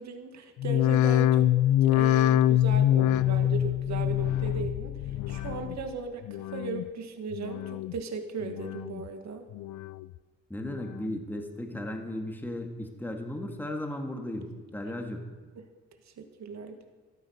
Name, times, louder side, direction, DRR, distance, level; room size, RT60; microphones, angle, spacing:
voice 1, 0.0-1.5 1.8-9.4 15.6-15.7 16.1-16.8, right 4 dB, 65° right, 6 dB, 2.0 m, -37 dB
sound 1, 0.6-5.9 6.2-6.8 7.3-8.0 8.4-9.1 9.5-10.2 10.6-11.2 11.7-11.8, left 12 dB, 75° left, 0.5 m, -25 dB
voice 2, 10.5-15.3, left 1 dB, 5° left, 3 dB, 2.1 m, -36 dB
14.0 x 12.5 x 6.6 m, 1.3 s
cardioid pair, 90°, 30 cm